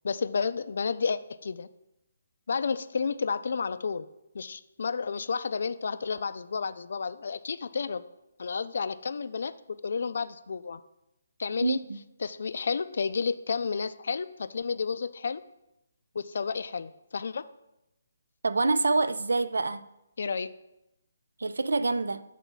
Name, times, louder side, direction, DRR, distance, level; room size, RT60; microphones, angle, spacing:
voice 1, 0.0-1.7 2.5-4.1 4.3-8.0 8.4-10.8 11.4-11.8 12.2-15.4 16.1-17.4 20.2-20.5, left 5 dB, 65° left, 0.3 m, -31 dB
voice 2, 11.6-12.0 18.4-19.8 21.4-22.2, right 3 dB, 85° right, 0.4 m, -26 dB
5.9 x 4.1 x 5.5 m
hypercardioid pair, 155°, 0 cm